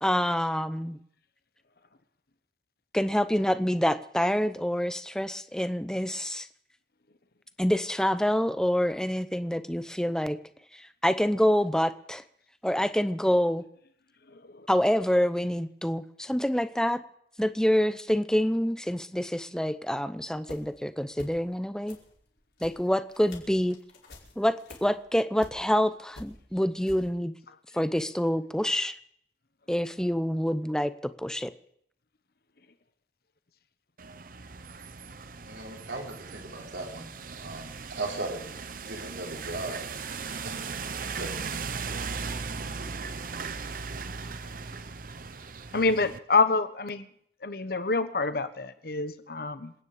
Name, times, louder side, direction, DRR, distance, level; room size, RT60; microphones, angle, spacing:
voice 1, 0.0-1.0 2.9-6.5 7.6-10.4 10.7-12.2 12.6-13.6 14.7-17.0 17.4-22.0 22.6-23.8 24.4-27.3 27.7-28.9 29.7-31.5, equal, 5° left, 12 dB, 0.7 m, -27 dB
sound 1, 20.3-20.9 21.1-21.6 21.8-25.9 26.1-27.1, left 1 dB, 80° left, 5.1 m, -49 dB
sound 2, 34.0-46.2, right 5 dB, 50° right, 0.9 m, -38 dB
voice 2, 35.5-37.1 37.4-39.8 40.4-40.6 40.9-41.3, right 2 dB, 75° right, 1 dB, 4.0 m, -37 dB
voice 3, 45.7-47.0 47.4-49.7, left 3 dB, 60° left, 11 dB, 1.2 m, -26 dB
27.5 x 9.6 x 5.1 m, 0.68 s
head